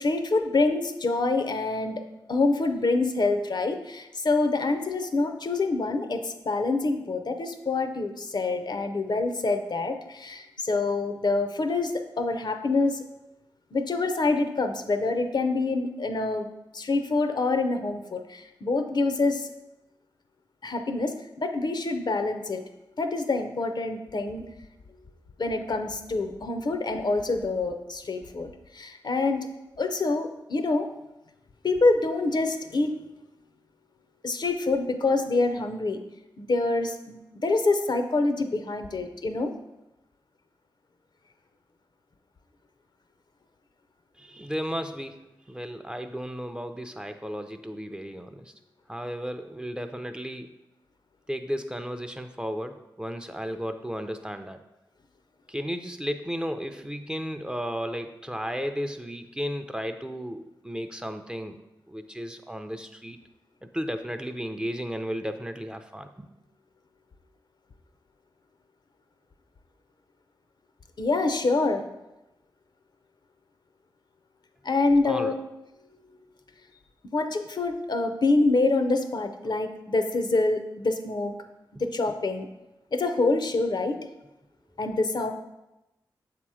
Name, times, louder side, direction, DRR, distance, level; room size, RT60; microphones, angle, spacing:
voice 1, 0.0-2.0 2.3-13.0 13.7-16.5 16.7-19.5 20.6-22.6 23.0-24.4 25.4-29.5 29.8-30.9 31.6-33.0 34.2-36.0 36.4-39.5 71.0-71.8 74.6-75.4 77.1-81.3 81.8-82.5 82.9-84.0 84.8-85.3, left 3 dB, 55° left, 7 dB, 0.6 m, -26 dB
voice 2, 44.2-48.5 48.9-50.5 51.3-54.6 55.5-61.6 61.9-63.2 63.6-66.1 75.0-75.3, equal, 10° right, 7 dB, 0.5 m, -34 dB
6.9 x 2.9 x 4.8 m, 0.96 s
cardioid pair, 40°, 9 cm